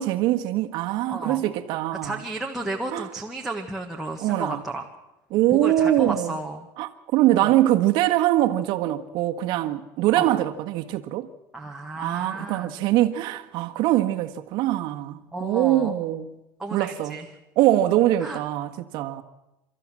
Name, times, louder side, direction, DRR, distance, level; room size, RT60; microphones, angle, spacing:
voice 1, 0.0-2.2 2.9-3.1 4.2-4.6 5.3-6.4 6.8-11.3 12.0-16.3 16.7-17.2 17.6-19.2, right 14 dB, 55° right, 1.6 m, -23 dB
voice 2, 1.1-1.4 2.0-4.8 5.5-6.7 7.4-7.5 10.2-10.3 11.5-12.7 15.3-15.9 16.6-17.3 18.2-18.4, right 2 dB, 5° right, 1.6 m, -33 dB
29.5 x 13.5 x 7.6 m
supercardioid pair, 140°, 9 cm